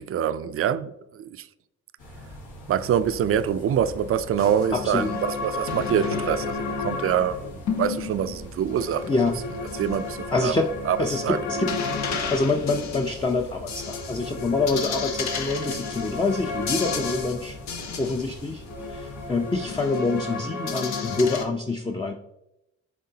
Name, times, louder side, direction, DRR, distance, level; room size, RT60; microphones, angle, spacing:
voice 1, 0.0-1.5 2.7-9.2 9.8-10.6 10.9-11.0 11.2-11.4, right 9 dB, 50° right, 0.4 m, -25 dB
sound 1, 2.0-19.8, equal, 80° left, 1.7 m, -44 dB
sound 2, 4.4-21.5, left 4 dB, 65° left, 0.9 m, -32 dB
voice 2, 4.7-5.1 9.1-9.4 10.3-10.7 11.0-11.7 12.3-17.6 18.0-18.6 18.9-22.1, left 3 dB, 15° left, 0.5 m, -26 dB
10.0 x 3.7 x 2.8 m
cardioid pair, 90°, 30 cm